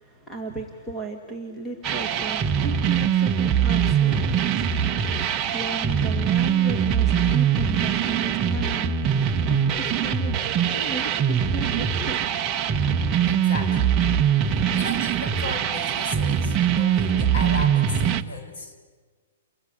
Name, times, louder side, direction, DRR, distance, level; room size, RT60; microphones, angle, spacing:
voice 1, 0.0-4.7 5.5-8.9 9.5-10.3 10.7-12.2, right 3 dB, 5° left, 1 dB, 2.1 m, -35 dB
sound 1, 1.8-18.2, right 8 dB, 15° right, 1.0 m, -22 dB
voice 2, 13.3-13.9 14.5-18.8, left 2 dB, 50° left, 6 dB, 5.2 m, -36 dB
29.5 x 20.5 x 9.7 m, 1.5 s
hypercardioid pair, 170°, 0 cm